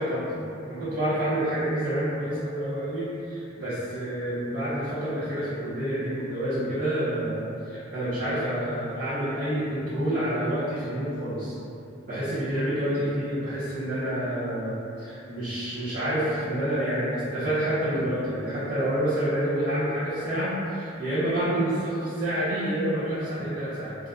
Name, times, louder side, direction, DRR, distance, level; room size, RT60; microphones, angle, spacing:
voice 1, 0.0-11.5 12.0-24.0, right 1 dB, 45° right, -14 dB, 0.7 m, -28 dB
2.4 x 2.2 x 2.4 m, 2.6 s
head